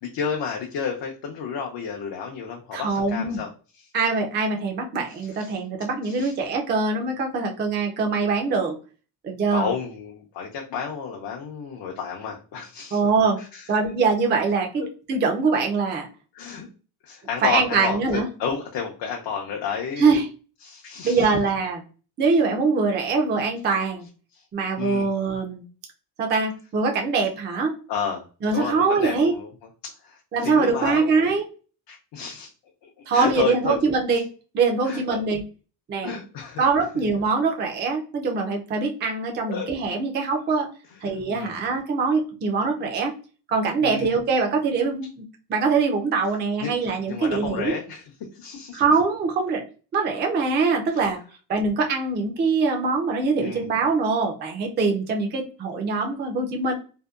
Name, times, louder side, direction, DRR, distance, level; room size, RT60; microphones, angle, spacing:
voice 1, 0.0-3.5 3.7-3.9 5.1-5.5 6.0-6.3 9.5-13.0 13.4-13.7 14.8-14.9 16.3-16.7 17.0-20.2 20.6-21.3 24.3-24.4 24.8-25.1 27.9-28.2 28.5-29.5 29.8-31.2 31.9-32.5 32.8-33.8 34.8-35.2 36.0-36.6 39.5-39.7 41.3-41.6 43.8-44.1 46.6-46.7 47.1-48.8 50.9-51.1 53.4-53.7, left 6 dB, 70° left, 0 dB, 0.6 m, -31 dB
voice 2, 2.7-3.4 3.9-8.8 9.2-9.7 12.9-13.4 13.7-16.1 17.4-18.3 20.0-20.3 21.0-21.8 22.2-24.1 24.5-25.6 26.2-27.7 28.4-29.4 30.3-31.5 33.1-34.3 34.5-35.4 35.9-36.1 36.6-40.7 41.0-43.1 43.5-47.8 48.7-49.6 49.9-51.2 51.5-56.7, right 4 dB, 25° right, 2 dB, 0.3 m, -23 dB
2.7 x 2.1 x 2.3 m, 0.36 s
cardioid pair, 145°, 42 cm